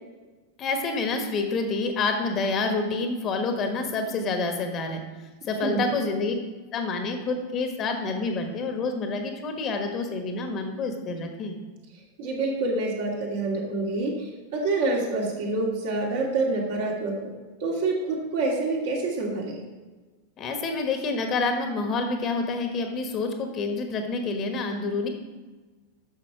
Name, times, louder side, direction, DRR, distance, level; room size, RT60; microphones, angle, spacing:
voice 1, 0.6-5.0 5.4-6.3 6.7-11.6 20.4-25.1, left 3 dB, 30° left, 5 dB, 1.3 m, -28 dB
voice 2, 12.2-17.3 17.6-19.6, right 3 dB, 55° right, -2 dB, 2.7 m, -27 dB
10.5 x 6.8 x 4.9 m, 1.3 s
figure-of-eight pair, 90°, 0 cm